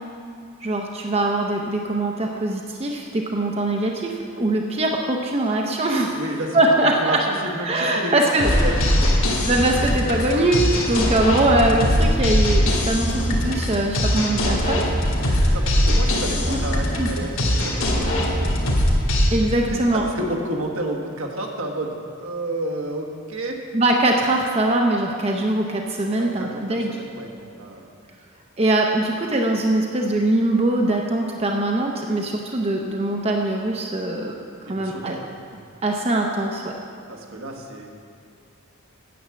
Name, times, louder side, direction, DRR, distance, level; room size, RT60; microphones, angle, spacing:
voice 1, 0.6-6.2 6.5-7.2 7.6-8.5 9.4-14.8 15.2-15.6 16.5-16.6 17.0-17.1 19.3-20.0 23.7-26.9 28.6-34.4 34.7-35.2 35.8-36.7, right 1 dB, 30° right, 1 dB, 0.6 m, -22 dB
voice 2, 6.1-9.1 11.0-11.1 15.4-18.5 19.9-23.7 26.2-27.9 34.7-35.3 37.1-37.9, right 1 dB, 70° right, 1 dB, 1.3 m, -31 dB
sound 1, 8.4-19.3, equal, 70° left, 1.9 m, -21 dB
9.4 x 7.1 x 7.5 m, 2.3 s
head